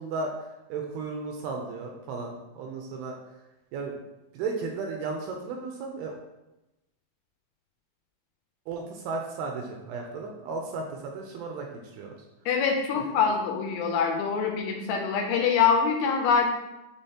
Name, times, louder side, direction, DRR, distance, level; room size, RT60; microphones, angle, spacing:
voice 1, 0.0-3.2 3.7-4.0 4.3-6.1 8.7-11.7 11.9-12.1, right 4 dB, 80° right, 2 dB, 2.4 m, -34 dB
voice 2, 12.5-16.5, left 6 dB, 80° left, 2 dB, 2.8 m, -24 dB
8.9 x 3.6 x 2.9 m, 0.97 s
omnidirectional pair, 5.0 m